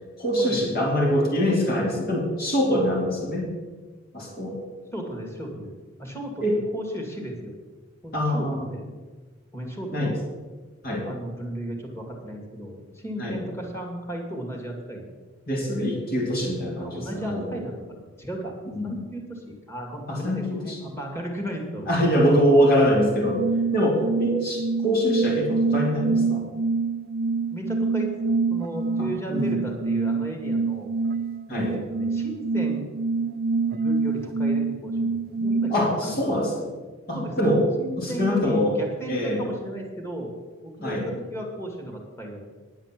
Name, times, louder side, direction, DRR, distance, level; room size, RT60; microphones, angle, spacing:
voice 1, 0.2-3.5 4.1-4.6 6.4-6.6 8.1-8.7 9.9-10.1 10.8-11.1 13.2-13.4 15.5-17.7 18.7-18.9 20.1-20.8 21.9-23.4 23.7-26.4 29.3-29.6 31.5-31.7 35.7-36.7 37.1-37.7 38.0-38.7 39.1-39.4 40.8-41.1, equal, 50° left, -1 dB, 2.8 m, -24 dB
voice 2, 4.9-5.7 6.0-6.4 6.7-7.5 8.0-8.5 8.7-8.9 9.5-10.1 11.0-15.1 16.8-18.6 18.8-21.9 27.5-30.9 31.5-32.9 33.8-36.4 37.1-37.5 37.8-40.3 40.6-42.5, right 1 dB, 15° left, 1 dB, 2.2 m, -35 dB
sound 1, 23.2-35.8, right 4 dB, 50° right, 0.5 m, -26 dB
10.5 x 8.0 x 7.5 m, 1.3 s
head